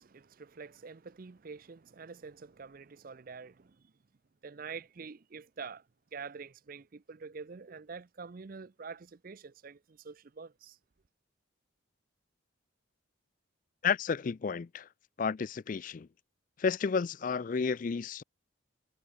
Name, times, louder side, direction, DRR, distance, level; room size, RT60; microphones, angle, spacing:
voice 1, 0.0-3.8 4.4-5.8 6.1-10.8, right 5 dB, 45° right, 0.5 m, -46 dB
voice 2, 13.8-14.9 15.2-16.1 16.6-18.2, left 5 dB, 40° left, 0.3 m, -31 dB
head